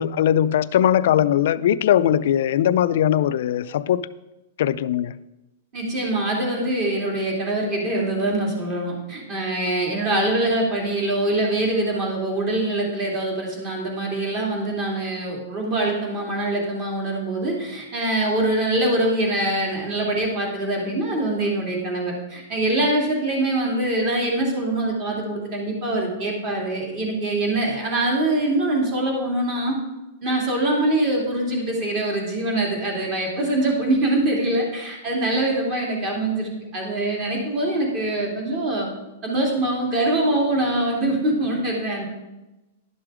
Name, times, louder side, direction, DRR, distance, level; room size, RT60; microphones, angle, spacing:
voice 1, 0.0-4.1 4.6-5.1, left 10 dB, 60° left, 0.4 m, -20 dB
voice 2, 5.7-29.7 30.2-38.9 39.2-42.1, right 1 dB, 30° right, 2.7 m, -24 dB
11.5 x 6.2 x 4.9 m
supercardioid pair, 165°, 0 cm